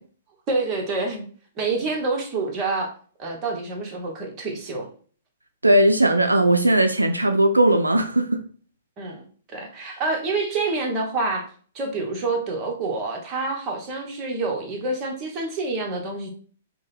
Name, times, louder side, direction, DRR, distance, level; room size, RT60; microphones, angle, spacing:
voice 1, 0.5-1.2 1.6-2.9 3.2-4.9 9.0-11.4 11.7-16.3, right 3 dB, 25° right, 1.1 m, -27 dB
voice 2, 5.6-8.4, right 1 dB, 85° right, 0.3 m, -18 dB
5.2 x 2.1 x 3.4 m
figure-of-eight pair, 110°, 0 cm